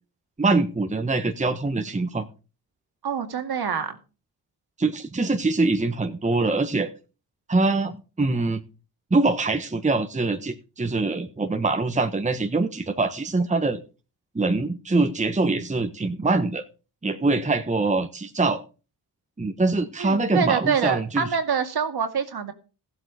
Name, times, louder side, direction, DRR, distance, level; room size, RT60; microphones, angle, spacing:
voice 1, 0.4-2.3 4.8-6.9 7.5-7.9 8.2-8.6 9.1-13.8 14.3-16.6 17.0-18.6 19.4-21.3, right 3 dB, 15° right, 7 dB, 1.3 m, -23 dB
voice 2, 3.0-4.0 20.0-22.5, right 6 dB, 50° right, 6 dB, 2.3 m, -25 dB
15.0 x 8.0 x 5.0 m, 0.34 s
supercardioid pair, 50°, 47 cm